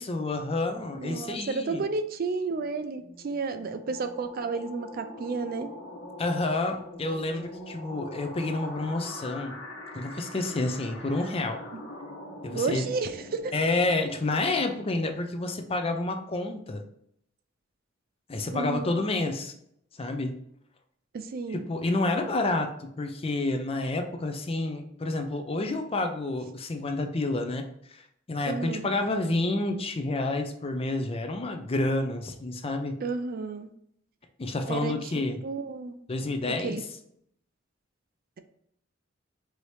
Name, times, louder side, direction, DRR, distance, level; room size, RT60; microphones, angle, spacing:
voice 1, 0.0-1.8 6.2-9.5 9.9-11.6 12.4-12.8 13.5-16.8 18.3-19.5 19.9-20.3 21.5-33.0 34.4-35.4 36.1-36.8, left 2 dB, 30° left, 5 dB, 0.5 m, -29 dB
voice 2, 0.9-5.7 12.5-13.5 18.5-19.0 21.1-21.7 28.5-28.9 33.0-33.7 34.7-34.9 35.4-36.0 36.6-36.8, right 4 dB, 50° right, 9 dB, 0.4 m, -31 dB
sound 1, 2.5-15.1, left 1 dB, 80° left, 1.3 m, -44 dB
4.8 x 2.8 x 3.1 m, 0.71 s
head